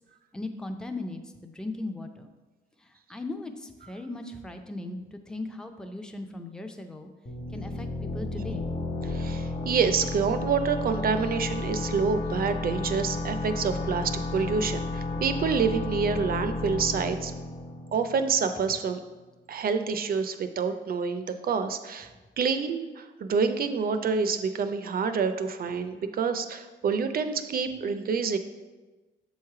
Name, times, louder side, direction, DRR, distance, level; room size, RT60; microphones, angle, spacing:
voice 1, 0.3-2.3 2.8-7.1 7.5-8.7, left 2 dB, 5° left, 5 dB, 0.5 m, -38 dB
sound 1, 7.3-18.8, left 3 dB, 35° left, 1.2 m, -32 dB
voice 2, 9.0-17.3 17.9-19.0 19.5-22.1 22.4-28.4, right 5 dB, 50° right, 9 dB, 0.5 m, -27 dB
7.1 x 3.2 x 4.7 m, 1.2 s
cardioid pair, 90°, 20 cm